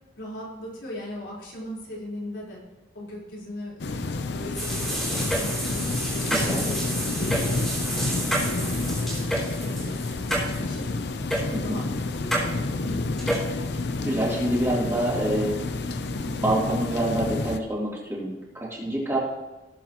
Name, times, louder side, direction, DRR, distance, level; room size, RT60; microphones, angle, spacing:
voice 1, 0.2-2.6 2.9-8.6 9.0-11.8 12.1-12.6, left 1 dB, 85° left, -6 dB, 4.1 m, -39 dB
sound 1, 3.8-17.6, left 3 dB, 60° left, 0.6 m, -29 dB
sound 2, 4.5-10.8 11.3-11.4 12.3-12.5 13.2-13.5, right 1 dB, ahead, 3.1 m, -29 dB
voice 2, 6.3-6.7 11.5-11.8 14.0-15.6 16.3-19.2, right 1 dB, 15° right, -6 dB, 3.0 m, -26 dB
18.5 x 7.4 x 3.0 m, 1.1 s
head